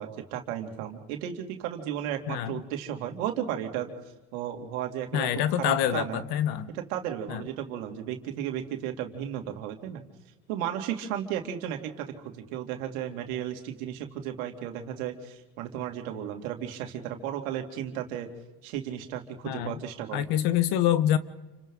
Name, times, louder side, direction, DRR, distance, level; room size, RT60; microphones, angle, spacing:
voice 1, 0.0-3.9 4.3-5.3 5.6-6.2 6.7-10.0 10.5-18.3 18.6-20.2, right 10 dB, 80° right, 4 dB, 2.7 m, -34 dB
voice 2, 2.3-2.6 5.1-6.7 7.3-7.4 19.4-19.8 20.1-21.2, left 11 dB, 65° left, 12 dB, 1.5 m, -26 dB
29.0 x 26.0 x 3.9 m, 1.1 s
supercardioid pair, 100°, 41 cm